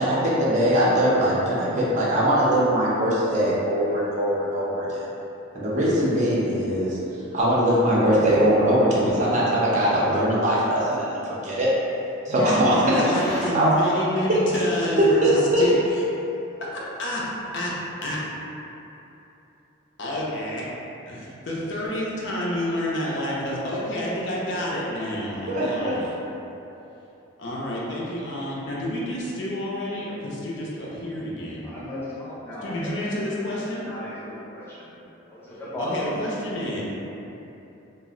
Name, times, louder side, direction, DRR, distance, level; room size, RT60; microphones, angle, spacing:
voice 1, 0.0-5.0 5.5-7.0 7.3-11.7 12.3-13.7 15.0-15.6 25.5-25.9, equal, 35° right, -7 dB, 0.5 m, -21 dB
voice 2, 12.9-15.7 16.7-17.2 17.5-17.7 18.0-18.2 20.0-20.7 21.1-26.1 27.4-31.7 32.6-33.9 35.8-36.8, equal, 60° left, -5 dB, 0.5 m, -29 dB
voice 3, 31.6-33.0 33.6-35.0 35.3-36.1, left 1 dB, 10° left, -10 dB, 0.6 m, -35 dB
2.4 x 2.0 x 3.6 m, 3.0 s
head